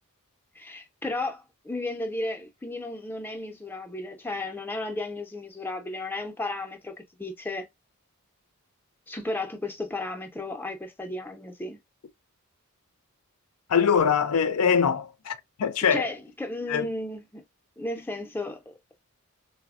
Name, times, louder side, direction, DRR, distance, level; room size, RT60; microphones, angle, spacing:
voice 1, 0.6-6.9 7.2-7.7 9.1-11.8 15.9-17.4 17.8-18.9, left 2 dB, 10° left, 0.5 m, -34 dB
voice 2, 13.7-16.1 16.7-16.9, left 7 dB, 80° left, 0.5 m, -23 dB
4.1 x 2.0 x 2.3 m
head